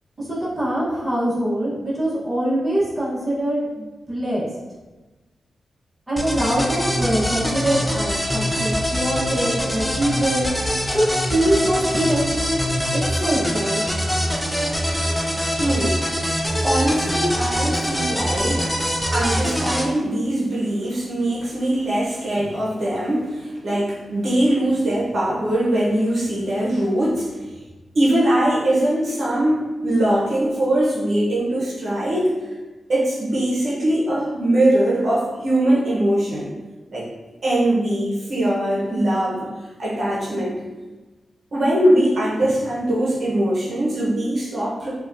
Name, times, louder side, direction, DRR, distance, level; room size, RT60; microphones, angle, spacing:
voice 1, 0.2-4.5 6.1-10.5 10.9-11.0 11.3-12.6 12.9-13.8, right 1 dB, 25° right, -8 dB, 1.2 m, -23 dB
sound 1, 6.2-19.9, equal, 5° left, 0.4 m, -23 dB
voice 2, 15.6-16.3 16.6-18.6 19.1-27.3 27.9-32.3 32.9-36.5 36.9-37.1 37.4-39.5 39.8-40.6 41.5-44.9, right 1 dB, 60° right, -7 dB, 0.9 m, -21 dB
4.7 x 2.4 x 2.7 m, 1.2 s
wide cardioid pair, 95°, 0 cm